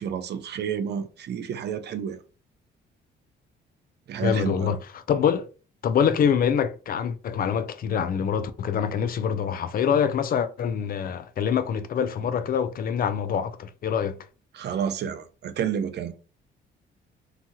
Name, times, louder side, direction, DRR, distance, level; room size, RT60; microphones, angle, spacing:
voice 1, 0.0-2.2 4.1-4.7 14.5-16.1, right 8 dB, 60° right, 0.5 m, -30 dB
voice 2, 4.2-5.5 5.8-14.2, left 7 dB, 50° left, 0.4 m, -25 dB
2.8 x 2.2 x 2.8 m
cardioid pair, 90°, 20 cm